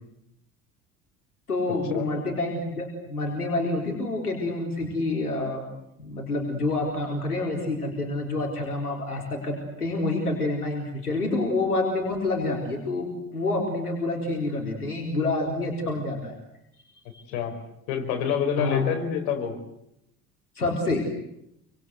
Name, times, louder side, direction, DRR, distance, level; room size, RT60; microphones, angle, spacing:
voice 1, 1.5-5.7 6.0-16.3 17.1-17.2 18.6-18.8 20.6-21.0, left 2 dB, 85° left, 1 dB, 4.4 m, -28 dB
voice 2, 17.9-19.5, left 8 dB, 65° left, 4 dB, 5.0 m, -27 dB
28.5 x 25.5 x 8.2 m, 0.79 s
figure-of-eight pair, 60°, 44 cm